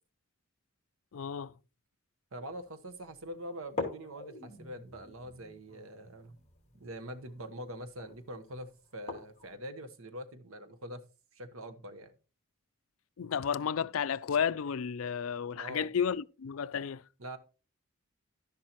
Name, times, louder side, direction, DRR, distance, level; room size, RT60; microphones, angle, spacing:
voice 1, 1.1-1.5 13.2-17.0, left 7 dB, 75° left, 0.4 m, -32 dB
voice 2, 2.3-6.4 6.7-11.0 11.3-12.1 15.5-15.9 17.2-17.4, right 1 dB, 75° right, 1.2 m, -44 dB
sound 1, 2.5-2.6 3.0-3.1 3.6-9.6, left 3 dB, 30° left, 2.5 m, -44 dB
11.5 x 10.5 x 3.0 m
head